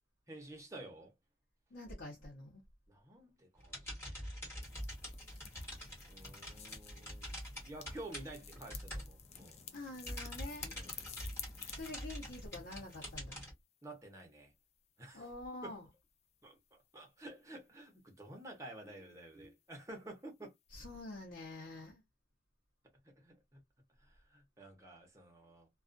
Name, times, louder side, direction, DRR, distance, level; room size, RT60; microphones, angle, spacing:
voice 1, 0.3-1.1 2.9-4.1 6.1-9.6 10.7-10.9 13.8-14.5 15.0-15.2 15.6-15.8 16.4-20.5 23.0-23.6 24.0-25.7, right 2 dB, 15° right, 0.8 m, -51 dB
voice 2, 1.7-2.6 9.7-10.8 11.7-13.4 15.1-15.9 20.7-22.0, left 2 dB, 85° left, 0.8 m, -47 dB
sound 1, 3.6-9.5 9.9-13.5, equal, 15° left, 1.3 m, -45 dB
sound 2, 4.6-13.2, left 9 dB, 35° left, 0.3 m, -52 dB
2.4 x 2.3 x 2.4 m
head